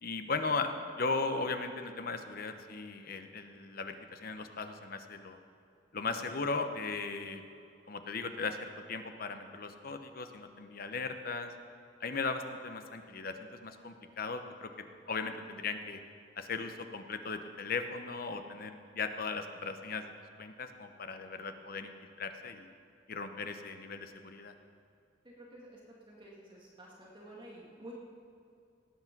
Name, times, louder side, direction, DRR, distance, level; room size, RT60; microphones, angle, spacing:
voice 1, 0.0-5.4 5.9-7.4 7.9-11.5 12.0-14.7 15.1-16.0 16.4-20.1 20.4-22.7 23.1-24.5, left 4 dB, 50° left, 7 dB, 0.9 m, -37 dB
voice 2, 25.2-25.8 26.1-27.9, right 1 dB, 25° right, -4 dB, 1.9 m, -51 dB
18.0 x 8.7 x 6.0 m, 2.4 s
head